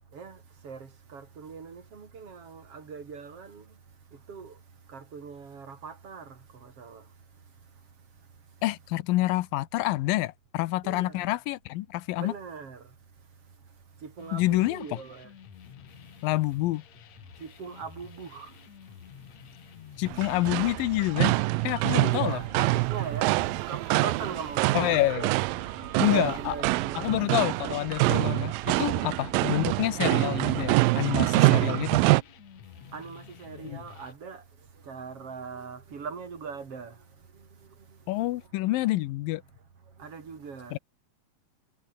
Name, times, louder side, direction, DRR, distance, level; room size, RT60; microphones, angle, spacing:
voice 1, 0.1-3.8 4.1-4.6 4.9-7.1 10.8-11.3 12.2-12.9 14.0-15.3 17.4-18.5 22.0-23.3 23.7-24.7 26.0-27.2 32.8-34.4 34.7-37.1 37.3-38.3 40.0-40.8, right 5 dB, 45° right, 4.0 m, -40 dB
voice 2, 8.6-12.3 14.3-15.0 16.2-16.8 20.0-21.4 21.6-22.4 24.7-25.3 26.0-26.6 27.0-32.0 33.6-33.8 38.1-39.4 40.7-40.8, left 17 dB, 85° left, 2.5 m, -27 dB
sound 1, 14.2-34.1, left 10 dB, 60° left, 2.5 m, -50 dB
sound 2, 20.1-32.2, right 21 dB, 85° right, 2.3 m, -25 dB
omnidirectional pair, 4.0 m